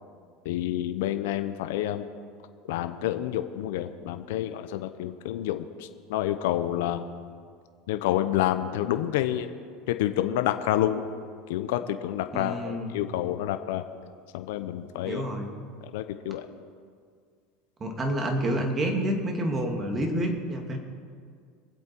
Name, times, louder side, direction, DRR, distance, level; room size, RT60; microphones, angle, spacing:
voice 1, 0.4-2.1 2.7-7.1 7.9-9.5 9.9-11.1 11.5-13.8 14.3-15.2 15.8-16.5, left 12 dB, 75° left, 9 dB, 0.7 m, -28 dB
voice 2, 12.3-13.0 15.0-15.5 17.8-20.8, right 1 dB, 25° right, 3 dB, 2.5 m, -28 dB
24.0 x 8.1 x 4.5 m, 2.1 s
supercardioid pair, 110°, 0 cm